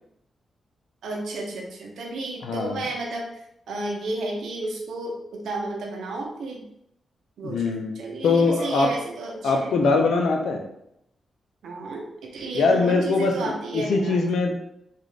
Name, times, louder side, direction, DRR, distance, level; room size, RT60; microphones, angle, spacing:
voice 1, 1.0-3.3 3.7-6.7 7.4-9.8 11.6-14.3, right 2 dB, 85° right, 0 dB, 0.9 m, -32 dB
voice 2, 2.4-2.8 7.4-7.9 8.2-8.9 9.4-10.6 12.5-14.6, left 3 dB, 85° left, 2 dB, 0.6 m, -22 dB
3.7 x 2.6 x 3.3 m, 0.77 s
cardioid pair, 75°, 0 cm